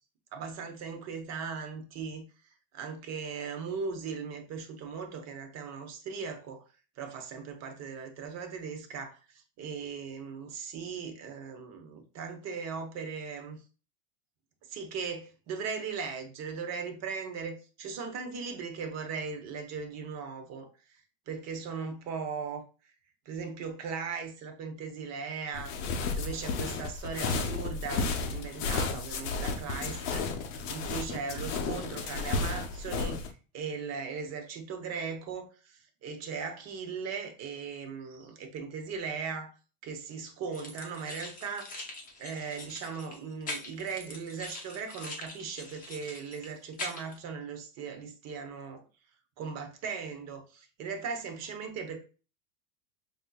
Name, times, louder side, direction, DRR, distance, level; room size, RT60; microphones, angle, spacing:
voice 1, 0.3-2.3 2.7-6.6 7.0-13.6 14.7-20.7 21.3-22.6 23.2-25.8 26.1-30.3 30.7-33.3 33.5-39.5 39.8-48.8 49.4-52.0, right 5 dB, 40° right, 5 dB, 1.0 m, -38 dB
sound 1, 25.5-33.3, left 4 dB, 70° left, 0.9 m, -33 dB
sound 2, 40.5-47.2, left 2 dB, 20° left, 0.8 m, -43 dB
5.4 x 2.7 x 2.3 m, 0.34 s
supercardioid pair, 125°, 40 cm